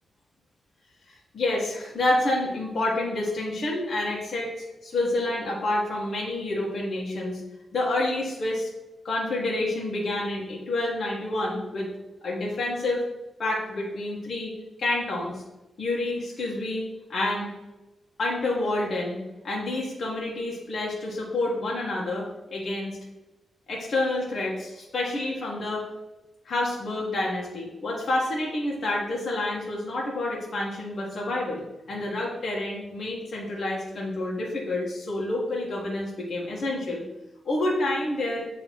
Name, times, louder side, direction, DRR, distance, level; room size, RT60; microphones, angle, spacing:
voice 1, 1.3-7.4 7.7-8.7 9.0-11.9 12.2-13.0 13.4-14.5 14.8-15.4 15.8-16.8 17.1-17.5 18.2-19.2 19.4-23.0 23.7-25.8 26.4-37.0 37.4-38.5, left 2 dB, 55° left, -4 dB, 1.5 m, -28 dB
7.7 x 3.3 x 4.3 m, 1.0 s
wide cardioid pair, 135°, 0 cm